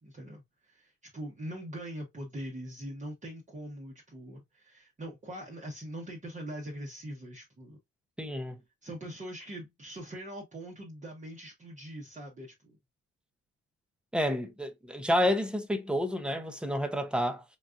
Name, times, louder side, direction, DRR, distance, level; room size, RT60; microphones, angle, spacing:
voice 1, 0.0-7.8 8.8-12.8, right 1 dB, 25° right, 0.9 m, -42 dB
voice 2, 8.2-8.6 14.1-17.4, equal, 5° right, 0.7 m, -29 dB
3.9 x 2.4 x 2.4 m
cardioid pair, 90°, 30 cm